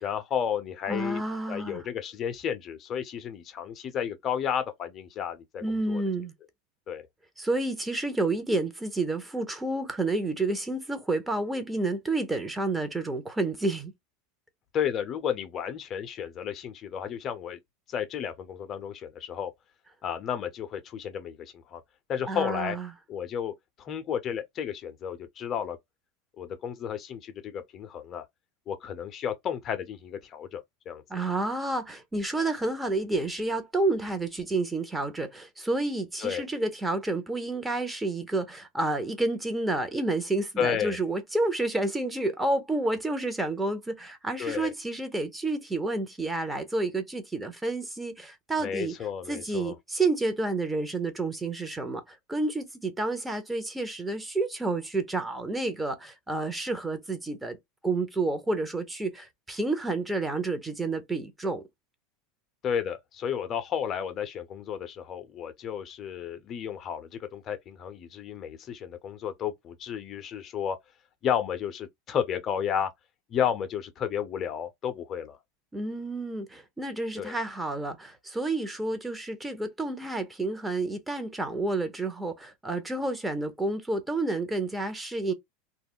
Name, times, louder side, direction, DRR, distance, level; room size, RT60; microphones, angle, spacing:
voice 1, 0.0-1.2 1.5-6.0 6.9-7.0 14.7-17.6 17.9-19.5 20.0-21.8 22.1-22.8 23.1-23.5 23.8-25.8 26.4-28.2 28.7-31.0 36.2-36.5 40.6-41.0 44.4-44.7 48.6-49.7 62.6-70.8 71.2-72.9 73.3-75.4 77.2-77.4, left 8 dB, 40° left, 0.5 m, -32 dB
voice 2, 0.9-1.8 5.6-6.3 7.4-13.9 22.3-22.9 31.1-48.9 49.3-57.6 57.8-61.6 75.7-85.3, right 2 dB, 10° right, 0.7 m, -30 dB
2.3 x 2.0 x 3.5 m
hypercardioid pair, 100°, 0 cm